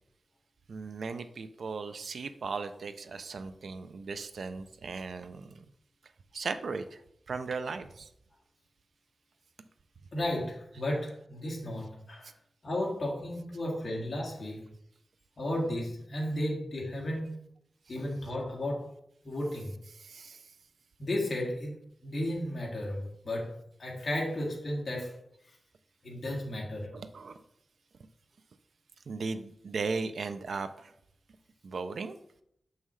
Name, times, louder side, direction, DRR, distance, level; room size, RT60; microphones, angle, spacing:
voice 1, 0.7-5.6 6.3-7.0 7.3-8.1 19.9-20.4 26.9-27.3 29.1-30.9 31.6-32.2, right 4 dB, 75° right, 11 dB, 0.4 m, -37 dB
voice 2, 10.1-12.3 12.6-14.6 15.4-17.3 17.9-18.9 19.2-19.7 21.0-21.8 22.0-23.5 23.8-25.1 26.0-26.9, left 1 dB, 50° left, -2 dB, 2.0 m, -33 dB
7.3 x 5.5 x 3.2 m, 0.73 s
wide cardioid pair, 135°, 0 cm